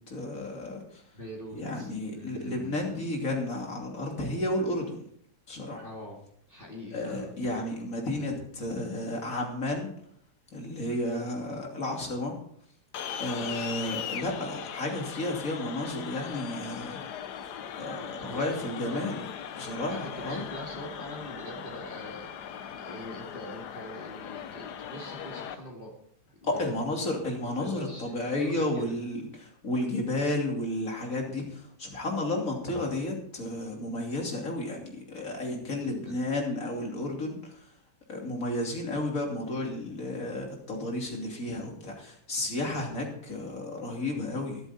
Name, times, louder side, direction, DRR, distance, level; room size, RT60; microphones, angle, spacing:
voice 1, 0.1-1.0 1.5-5.0 5.5-5.8 6.9-9.9 10.5-12.4 13.2-17.0 17.8-19.2 19.5-20.4 26.4-37.6 38.1-44.6, left 1 dB, 55° left, 0 dB, 3.4 m, -32 dB
voice 2, 1.1-3.0 5.8-6.2 6.5-7.4 18.2-19.2 19.9-25.9 26.4-26.8 27.1-27.2 27.6-28.9 35.8-36.2, equal, 35° left, -4 dB, 2.5 m, -43 dB
sound 1, 12.9-25.6, left 8 dB, 90° left, 1.5 m, -39 dB
22.5 x 8.0 x 4.3 m, 0.67 s
omnidirectional pair, 1.7 m